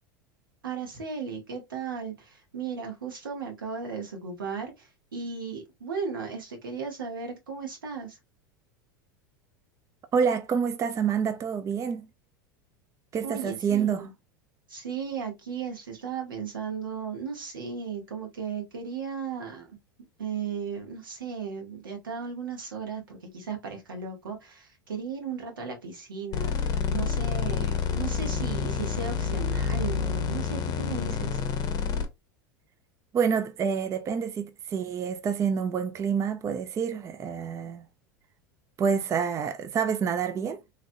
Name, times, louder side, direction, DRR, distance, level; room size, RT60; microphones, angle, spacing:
voice 1, 0.6-8.2 13.2-14.1 14.7-19.7 20.2-31.4, right 5 dB, 90° right, 1.2 m, -36 dB
voice 2, 10.1-12.1 13.1-14.1 33.1-37.8 38.8-40.6, right 6 dB, 25° right, 0.4 m, -27 dB
sound 1, 26.3-32.1, left 6 dB, 35° left, 0.7 m, -28 dB
3.0 x 2.5 x 2.6 m
hypercardioid pair, 95°, 11 cm